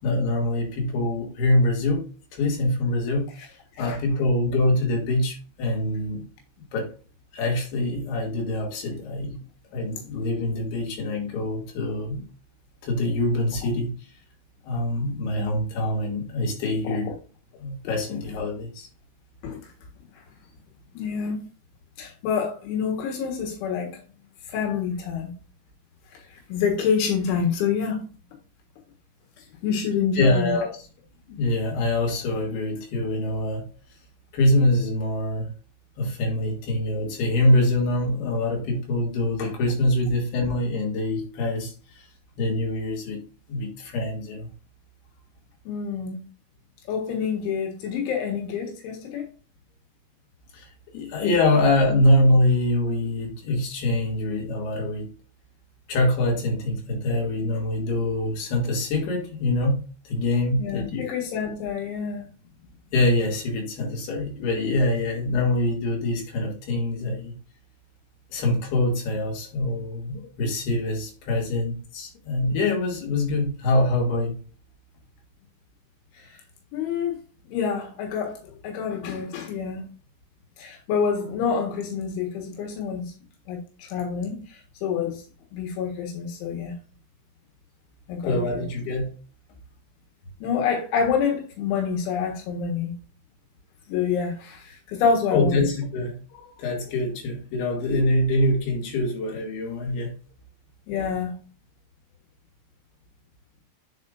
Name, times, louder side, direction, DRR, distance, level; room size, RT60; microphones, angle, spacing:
voice 1, 0.0-2.0 2.4-3.3 3.8-6.3 6.7-6.9 7.3-9.4 9.7-12.3 12.8-13.9 14.6-17.1 17.6-18.9 30.2-30.8 31.3-33.6 34.3-35.5 36.0-41.7 42.4-43.2 43.5-44.5 50.5-50.7 50.9-55.1 55.9-59.8 60.1-61.1 62.9-67.3 68.3-74.3 88.2-89.1 95.3-96.2 96.6-100.1, left 1 dB, 60° left, 4.2 m, -24 dB
voice 2, 21.0-21.4 22.0-24.0 24.5-25.3 26.1-28.0 29.4-30.6 45.7-46.2 46.9-49.3 60.6-62.3 76.2-76.4 76.7-77.2 77.5-79.8 80.6-83.1 83.5-85.2 85.5-86.7 88.1-88.6 90.4-92.9 93.9-95.7 96.3-96.5 100.9-101.3, left 6 dB, 85° left, 3.9 m, -27 dB
9.6 x 5.6 x 2.5 m
omnidirectional pair, 5.3 m